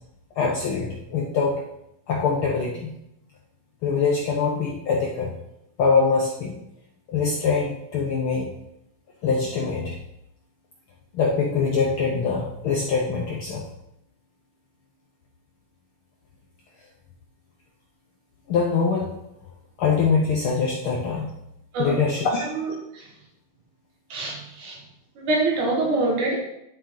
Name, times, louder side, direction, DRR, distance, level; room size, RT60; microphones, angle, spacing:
voice 1, 0.4-1.6 2.1-2.9 3.8-5.3 5.8-6.6 7.1-8.5 9.2-10.0 11.1-13.7 18.5-19.2 19.8-21.3 21.8-22.5, left 5 dB, 75° left, -2 dB, 1.2 m, -23 dB
voice 2, 22.5-23.1 24.1-24.8 25.2-26.4, right 2 dB, 85° right, -1 dB, 3.1 m, -25 dB
10.0 x 4.4 x 3.8 m, 0.82 s
omnidirectional pair, 3.4 m